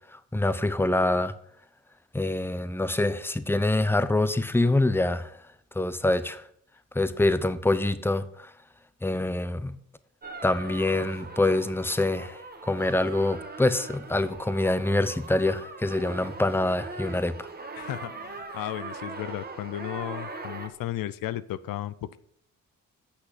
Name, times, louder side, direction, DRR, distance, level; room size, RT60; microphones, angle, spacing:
voice 1, 0.1-1.3 2.1-5.4 5.7-6.4 6.9-8.5 9.0-9.7 10.4-17.5, left 2 dB, 5° left, 13 dB, 0.8 m, -25 dB
sound 1, 10.2-20.7, right 3 dB, 30° right, 1.7 m, -41 dB
voice 2, 17.8-22.2, left 13 dB, 80° left, 16 dB, 0.6 m, -34 dB
8.5 x 6.2 x 7.8 m, 0.67 s
cardioid pair, 75°, 33 cm